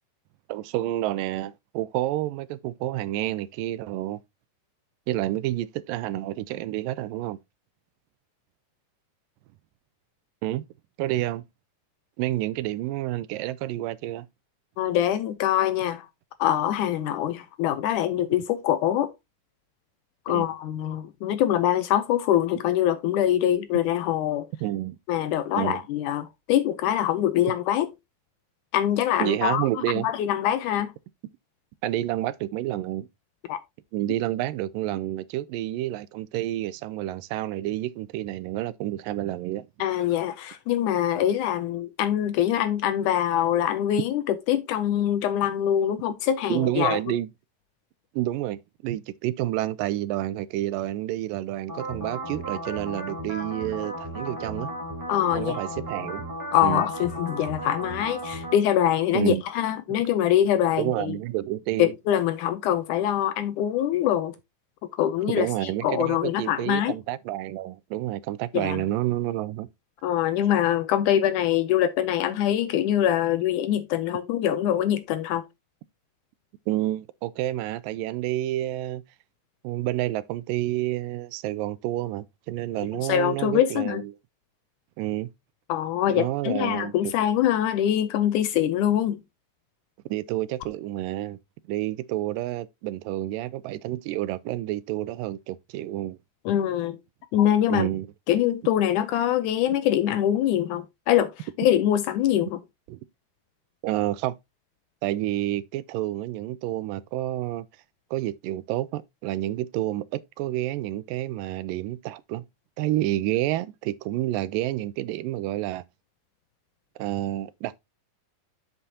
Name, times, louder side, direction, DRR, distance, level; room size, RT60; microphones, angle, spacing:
voice 1, 0.5-4.2 5.1-7.4 10.4-10.6 11.0-11.4 12.2-14.3 20.3-20.5 24.6-25.0 25.6-25.8 29.2-30.1 31.8-33.1 33.9-39.7 41.1-41.3 46.5-47.3 48.1-54.7 55.4-56.2 56.6-56.8 59.1-59.4 60.8-61.9 65.3-69.7 76.7-79.0 79.6-84.1 85.0-85.3 86.1-87.1 90.1-91.4 91.7-96.2 97.7-98.1 102.9-103.0 103.8-104.3 105.0-107.7 108.1-112.4 112.8-115.8 117.0-117.8, right 14 dB, 80° right, 2.2 m, -29 dB
voice 2, 14.8-16.1 16.4-19.1 20.3-24.5 25.1-27.9 28.7-29.7 30.0-30.9 33.5-33.6 39.8-47.0 55.1-55.6 56.5-61.2 61.8-64.4 65.0-67.0 68.5-68.8 70.0-75.4 83.1-84.0 85.7-89.2 96.5-97.0 97.3-97.9 98.3-102.6, left 11 dB, 80° left, 2.0 m, -24 dB
sound 1, 51.7-58.5, right 1 dB, 5° right, 3.8 m, -35 dB
8.0 x 7.6 x 2.8 m
omnidirectional pair, 4.0 m